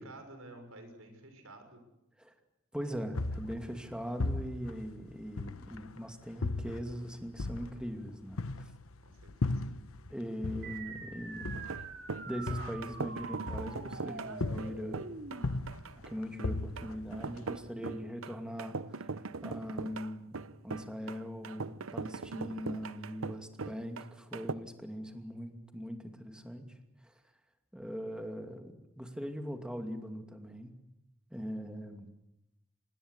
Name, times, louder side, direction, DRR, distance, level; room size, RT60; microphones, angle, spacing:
voice 1, 0.0-1.8 9.0-9.7, right 2 dB, 90° right, 7 dB, 6.3 m, -51 dB
voice 2, 2.7-8.7 10.1-11.5 12.3-15.0 16.1-19.1 19.4-20.4 20.6-26.7 27.0-27.1 27.7-30.7 31.3-32.1, equal, 5° right, 5 dB, 2.6 m, -41 dB
sound 1, 3.1-6.0 6.4-10.1 10.4-14.1 14.4-15.0 15.3-17.6, left 2 dB, 85° left, 1.0 m, -37 dB
sound 2, 10.6-15.6, right 4 dB, 55° right, 2.8 m, -45 dB
sound 3, 11.5-24.5, right 4 dB, 75° right, 0.9 m, -41 dB
26.0 x 20.5 x 8.3 m, 0.88 s
head